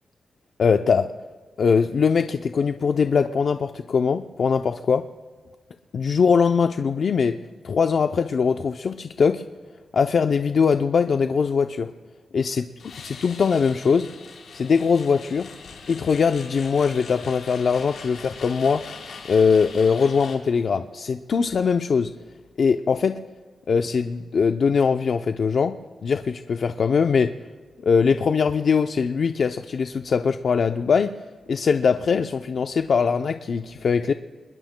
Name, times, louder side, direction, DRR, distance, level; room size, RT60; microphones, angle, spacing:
voice 1, 0.6-1.1 1.6-5.1 5.9-7.4 7.6-9.4 9.9-11.9 12.3-12.6 13.0-14.1 14.5-15.5 15.9-18.8 19.3-22.1 22.6-23.2 23.7-25.7 26.0-27.3 27.8-31.1 31.5-34.1, left 5 dB, 55° left, 7 dB, 0.5 m, -21 dB
sound 1, 12.8-20.4, left 5 dB, 90° left, 3.6 m, -41 dB
29.5 x 21.0 x 2.2 m, 1.5 s
wide cardioid pair, 125°, 0 cm